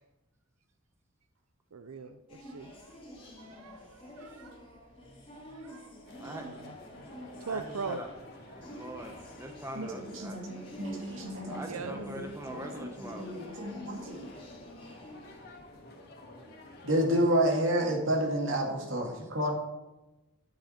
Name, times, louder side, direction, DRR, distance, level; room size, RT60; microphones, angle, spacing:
voice 1, 1.7-3.0 3.4-4.6 5.3-5.9 6.2-6.7 7.4-8.0 8.6-8.7 11.7-12.0, right 5 dB, 90° right, 9 dB, 0.6 m, -41 dB
sound 1, 2.3-15.6, equal, 25° left, 2.3 m, -48 dB
voice 2, 5.0-5.6 6.2-6.5 7.5-8.1 8.6-10.4 11.4-13.4 15.9-16.0, right 1 dB, 15° right, 4 dB, 0.8 m, -43 dB
sound 2, 6.1-17.3, left 1 dB, 45° left, 1.9 m, -51 dB
voice 3, 9.7-12.2 12.5-14.3 16.8-19.5, equal, 65° right, 1 dB, 2.1 m, -30 dB
10.0 x 8.2 x 4.3 m, 1.0 s
head